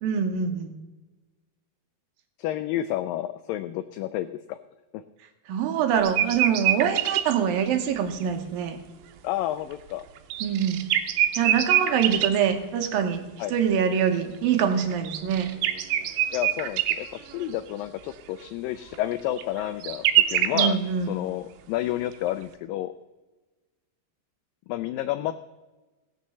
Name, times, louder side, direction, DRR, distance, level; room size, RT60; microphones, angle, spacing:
voice 1, 0.0-0.7 5.5-8.8 10.4-10.8 11.3-15.5 20.5-21.1, right 8 dB, 70° right, 6 dB, 2.6 m, -25 dB
voice 2, 2.4-4.6 4.9-5.0 9.2-10.0 13.4-13.5 16.3-20.8 21.1-22.9 24.7-25.4, left 13 dB, 90° left, 12 dB, 2.0 m, -30 dB
sound 1, 6.0-7.4 8.2-8.3 10.2-12.4 14.9-17.0 17.3-17.5 18.9-19.0 19.4-20.7, right 12 dB, 90° right, 2.9 m, -24 dB
17.0 x 6.5 x 6.9 m, 1.2 s
omnidirectional pair, 4.5 m